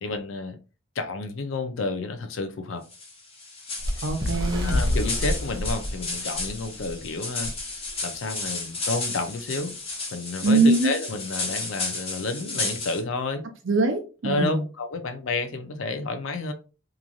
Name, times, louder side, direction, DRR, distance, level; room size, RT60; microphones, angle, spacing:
voice 1, 0.0-0.6 1.0-2.9 4.0-4.1 4.6-7.5 8.0-9.7 10.1-13.4 14.2-16.5, left 3 dB, 70° left, 0.5 m, -30 dB
sound 1, 2.9-13.0, left 3 dB, 30° left, 0.9 m, -33 dB
Bird, 3.8-7.0 7.4-7.6 7.9-8.1 8.9-9.0, left 1 dB, 20° right, 0.7 m, -27 dB
voice 2, 4.0-4.8 10.4-10.9 13.7-14.6, right 3 dB, 65° right, 0.6 m, -22 dB
3.0 x 2.5 x 2.3 m
head